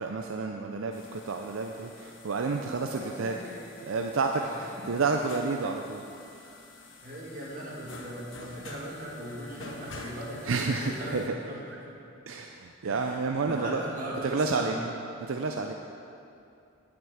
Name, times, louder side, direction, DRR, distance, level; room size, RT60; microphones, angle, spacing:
voice 1, 0.0-3.4 3.9-4.4 4.9-6.0 10.5-11.3 12.3-13.8 14.2-14.7 15.3-15.7, right 4 dB, 70° right, 3 dB, 0.5 m, -30 dB
sound 1, 0.9-11.3, left 3 dB, 65° left, 1.0 m, -49 dB
voice 2, 2.8-3.6 4.2-4.9 5.6-5.7 7.0-11.9 12.8-14.9, right 1 dB, 40° right, -5 dB, 2.1 m, -39 dB
9.0 x 6.0 x 7.9 m, 2.6 s
head